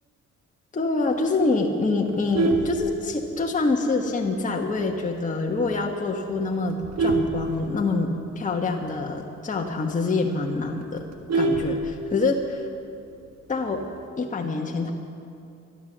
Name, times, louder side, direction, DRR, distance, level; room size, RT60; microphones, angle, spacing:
voice 1, 0.7-11.0 11.3-11.8 12.1-12.7 13.5-13.8 14.2-14.9, left 3 dB, 25° left, 1 dB, 1.2 m, -26 dB
Vehicle horn car horn honking, 2.1-3.5 4.0-4.3 4.6-4.7 5.1-5.2 5.5-5.8 6.4-8.2 8.6-8.7 9.0-9.1 9.5-9.6 9.9-10.0 10.3-12.3 13.5-14.0, right 2 dB, 55° right, 1.7 m, -26 dB
13.0 x 12.0 x 7.3 m, 2.6 s
cardioid pair, 90°, 30 cm